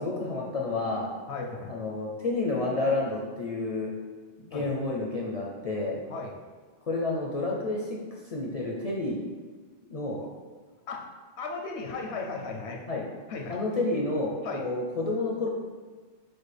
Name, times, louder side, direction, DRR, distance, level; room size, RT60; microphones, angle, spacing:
voice 1, 0.0-1.1 1.6-3.9 4.4-6.0 6.9-9.2 9.8-10.2 12.9-13.0 13.5-15.5, left 2 dB, 50° left, -3 dB, 0.4 m, -30 dB
voice 2, 1.3-1.7 4.5-4.7 6.1-6.4 10.2-10.3 10.9-11.1 11.4-12.8 13.3-13.6 14.4-14.6, left 4 dB, 80° left, 1 dB, 0.9 m, -36 dB
6.1 x 2.2 x 3.2 m, 1.5 s
omnidirectional pair, 1.1 m